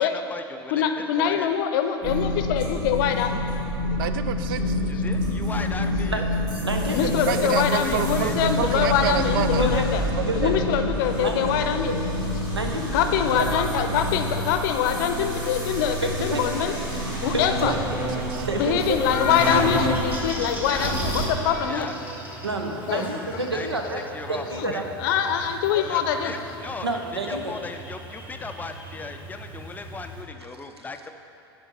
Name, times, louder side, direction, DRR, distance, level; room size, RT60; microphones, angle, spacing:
voice 1, 0.0-1.5 4.9-6.3 7.7-8.4 14.8-14.9 19.4-19.7 20.6-21.0 21.7-21.9 22.9-23.0 23.5-23.7 24.1-24.9 25.8-26.9 27.3-31.1, left 3 dB, 15° left, 7 dB, 0.4 m, -37 dB
voice 2, 0.7-3.4 3.9-4.0 4.6-5.0 5.6-5.7 5.9-6.1 6.8-12.1 12.9-17.9 18.5-21.9 22.9-24.1 24.4-24.7 25.0-26.5, left 8 dB, 55° left, 7 dB, 0.6 m, -25 dB
sound 1, 2.0-21.3, left 1 dB, 30° right, 1.8 m, -28 dB
voice 3, 4.0-4.8 7.3-9.6 10.2-10.5 17.7-18.5, right 10 dB, 60° right, 10 dB, 0.4 m, -29 dB
voice 4, 6.5-7.5 9.5-9.9 10.3-10.5 11.2-11.5 11.8-11.9 12.5-12.9 13.3-13.5 16.0-16.4 17.3-17.7 18.4-19.0 22.4-24.0 24.3-24.8 26.8-27.5 30.6-30.7, right 2 dB, 90° right, 3 dB, 0.7 m, -29 dB
Buzz, 16.3-30.2, equal, 10° right, 1.5 m, -34 dB
7.9 x 5.2 x 5.3 m, 2.9 s
figure-of-eight pair, 85°, 13 cm